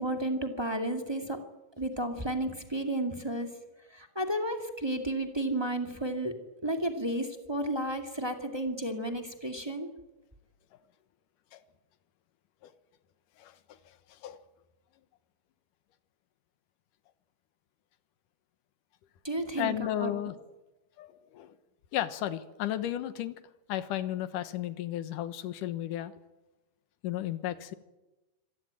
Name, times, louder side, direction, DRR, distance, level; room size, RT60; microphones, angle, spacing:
voice 1, 0.0-1.4 1.8-3.5 3.9-6.3 6.6-9.9 19.2-20.1, right 1 dB, 15° right, 5 dB, 1.1 m, -32 dB
voice 2, 13.4-14.4 19.6-20.4 21.0-21.6 21.9-23.3 23.7-26.1 27.0-27.7, left 12 dB, 65° left, 13 dB, 2.5 m, -34 dB
25.5 x 18.0 x 9.0 m, 1.1 s
omnidirectional pair, 4.3 m